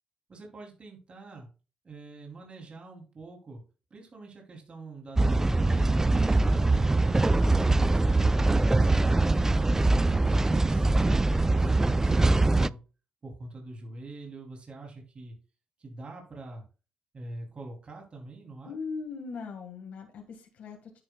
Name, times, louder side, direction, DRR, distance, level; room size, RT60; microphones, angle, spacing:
voice 1, 0.3-1.5 1.8-3.6 3.9-6.0 6.4-12.8 13.2-15.4 15.8-16.6 17.1-18.7, right 2 dB, 40° right, 0 dB, 2.9 m, -44 dB
sound 1, 5.2-12.7, right 2 dB, 15° right, 0.3 m, -23 dB
voice 2, 18.6-21.0, left 5 dB, 75° left, 2 dB, 1.6 m, -39 dB
10.0 x 8.6 x 2.3 m, 0.34 s
cardioid pair, 75°, 3 cm